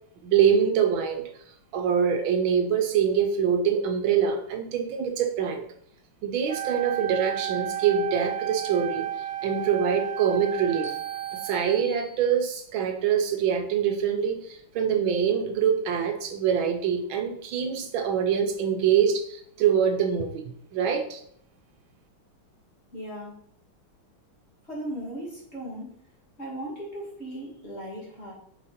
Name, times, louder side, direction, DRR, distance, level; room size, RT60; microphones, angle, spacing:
voice 1, 0.2-1.2 1.7-5.6 6.2-9.1 9.4-11.0 11.3-21.2, right 7 dB, 75° right, 5 dB, 1.5 m, -24 dB
Wind instrument woodwind instrument, 6.5-11.9, right 11 dB, 35° right, 1.3 m, -33 dB
sound 1, 10.8-12.7, right 3 dB, ahead, 2.1 m, -46 dB
voice 2, 22.9-23.4 24.6-25.9 26.4-28.3, right 1 dB, 30° left, -4 dB, 2.7 m, -37 dB
7.0 x 5.5 x 4.2 m, 0.68 s
omnidirectional pair, 2.3 m